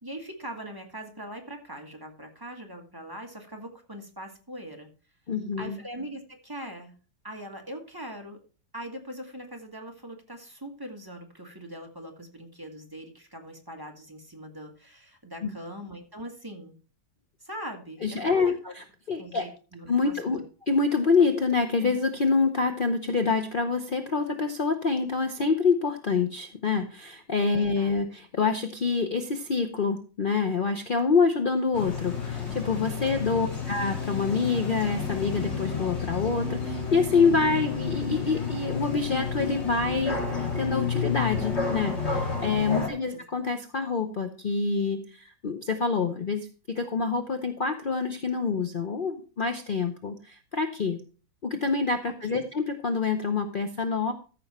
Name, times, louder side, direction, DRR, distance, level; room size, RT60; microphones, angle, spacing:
voice 1, 0.0-4.9 5.6-7.0 7.2-8.4 8.7-16.7 17.4-18.7 19.2-20.4 27.6-28.0 33.2-33.5 42.7-43.2 52.0-52.5, right 1 dB, 10° right, 2 dB, 1.4 m, -41 dB
voice 2, 5.3-5.8 15.4-15.5 18.0-18.5 19.1-19.4 19.9-20.4 20.7-51.0 51.4-54.1, left 4 dB, 55° left, 6 dB, 0.5 m, -26 dB
sound 1, 31.7-42.9, left 5 dB, 35° left, 2.5 m, -31 dB
14.0 x 6.0 x 4.3 m, 0.36 s
omnidirectional pair, 2.1 m